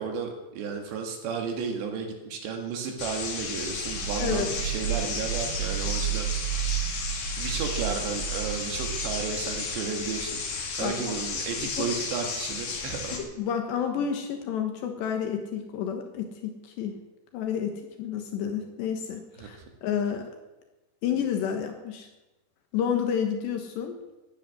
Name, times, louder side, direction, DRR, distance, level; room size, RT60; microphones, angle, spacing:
voice 1, 0.0-6.3 7.4-10.4 10.8-13.2 19.4-19.6, right 6 dB, 75° right, 3 dB, 4.1 m, -33 dB
sound 1, 3.0-13.2, left 4 dB, 55° left, 4.1 m, -33 dB
sound 2, 3.8-10.5, right 11 dB, 45° right, 2.6 m, -33 dB
voice 2, 4.2-4.5 10.8-11.2 11.8-11.9 13.1-17.0 17.3-20.3 21.0-22.1 22.7-24.0, left 8 dB, 75° left, 4 dB, 3.4 m, -30 dB
13.5 x 10.5 x 9.6 m, 1.1 s
omnidirectional pair, 5.1 m